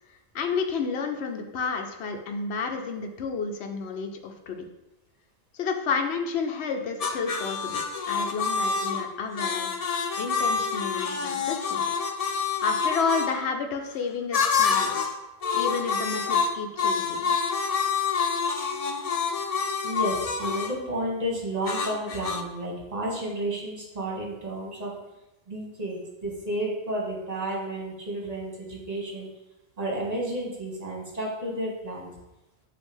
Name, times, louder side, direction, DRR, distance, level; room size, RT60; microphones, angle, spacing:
voice 1, 0.3-4.7 5.5-9.7 10.2-11.8 12.6-15.2 15.5-17.3, left 5 dB, 75° left, 4 dB, 1.0 m, -31 dB
sound 1, 7.0-13.3 14.3-15.2 15.4-20.8 21.7-22.4, left 5 dB, 50° left, 0.5 m, -27 dB
voice 2, 19.8-24.9 25.5-29.3 29.8-32.1, right 1 dB, 35° right, -3 dB, 2.0 m, -31 dB
7.9 x 2.8 x 5.4 m, 0.97 s
omnidirectional pair, 1.1 m